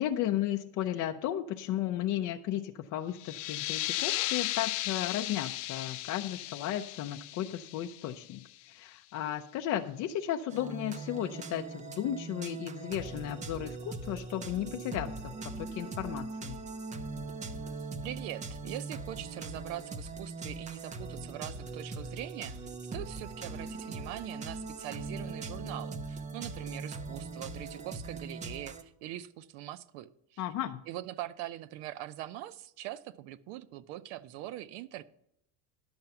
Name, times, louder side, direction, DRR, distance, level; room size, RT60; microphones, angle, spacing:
voice 1, 0.0-16.6 30.4-30.8, left 11 dB, 40° left, 5 dB, 0.5 m, -34 dB
sound 1, 3.1-8.5, left 18 dB, 85° left, 0.6 m, -36 dB
sound 2, 10.5-28.8, right 3 dB, 15° right, 0.4 m, -41 dB
voice 2, 18.0-22.6 22.9-30.4 30.9-35.0, right 14 dB, 70° right, 14 dB, 0.8 m, -42 dB
10.5 x 6.6 x 5.9 m, 0.74 s
cardioid pair, 155°, 44 cm